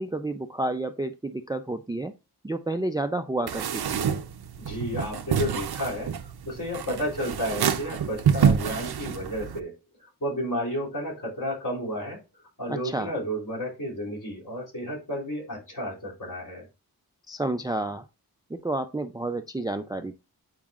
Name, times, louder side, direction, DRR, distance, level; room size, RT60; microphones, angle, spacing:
voice 1, 0.0-2.1 2.4-4.0 12.7-13.1 17.3-18.0 18.5-20.1, right 2 dB, 10° right, 0.4 m, -30 dB
sound 1, 3.5-9.6, right 7 dB, 75° right, 0.6 m, -27 dB
voice 2, 4.6-9.7 10.0-12.2 12.6-16.7, equal, 50° left, 3.5 m, -32 dB
8.9 x 4.8 x 2.4 m
wide cardioid pair, 100°, 38 cm